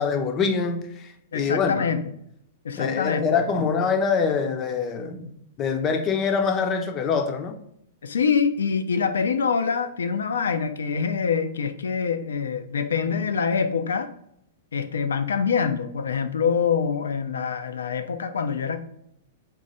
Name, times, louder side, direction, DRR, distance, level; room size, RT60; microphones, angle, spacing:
voice 1, 0.0-1.9 2.8-5.3 5.6-7.6, left 5 dB, 25° left, 0.7 m, -24 dB
voice 2, 1.3-2.0 2.6-3.2 3.5-3.7 8.0-14.1 14.7-18.8, left 6 dB, 65° left, 0.5 m, -25 dB
3.8 x 3.1 x 4.0 m
figure-of-eight pair, 100°, 0 cm